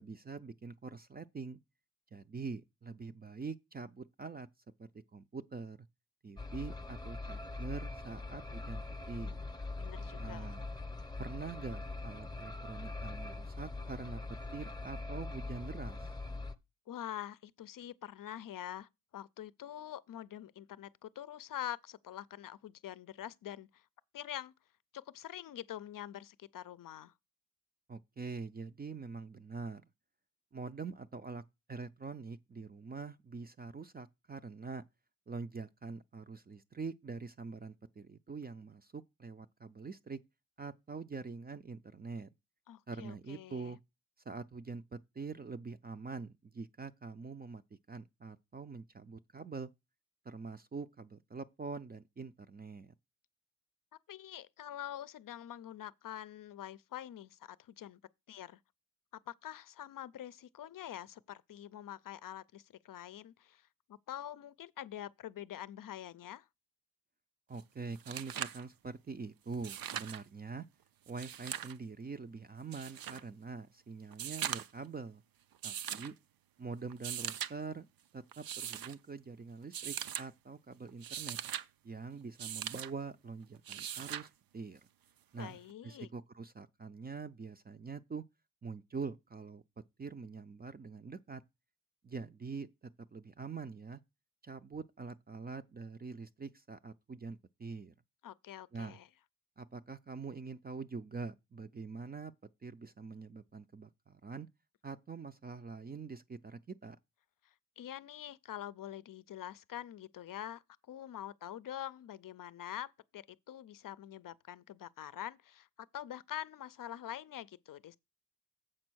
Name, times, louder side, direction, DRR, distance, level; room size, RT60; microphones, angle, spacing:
voice 1, 0.0-1.6 2.1-4.5 4.8-5.8 6.2-9.4 10.2-10.6 11.2-14.2 14.5-16.1 27.9-29.8 30.5-31.4 31.7-34.8 35.3-40.2 40.6-42.3 42.9-43.8 44.3-47.6 47.9-49.7 50.2-52.9 67.5-70.7 71.1-75.2 75.6-76.1 76.6-77.9 78.1-81.4 81.8-84.8 85.3-85.6 85.8-88.2 88.6-89.6 90.0-91.4 92.0-94.0 94.4-97.9 98.7-99.0 99.6-102.3 102.6-104.5 104.8-107.0, right 4 dB, 30° right, 0.4 m, -44 dB
sound 1, 6.4-16.6, left 3 dB, 10° left, 0.7 m, -42 dB
voice 2, 9.7-10.5 16.9-23.9 24.1-24.5 24.9-27.1 42.7-43.8 54.1-58.0 58.3-58.6 59.1-66.5 85.3-86.1 98.2-99.1 107.4-118.0, left 11 dB, 70° left, 0.5 m, -45 dB
sound 2, 67.6-67.7 67.9-68.6 69.5-70.2 71.1-71.8 72.7-73.2 74.1-74.8 75.6-76.1 76.9-77.5 78.3-78.9 79.7-80.3 80.9-81.7 82.4-82.9 83.7-84.3 85.7-85.8, right 10 dB, 80° right, 0.6 m, -40 dB
7.6 x 5.2 x 6.2 m
wide cardioid pair, 115°, 34 cm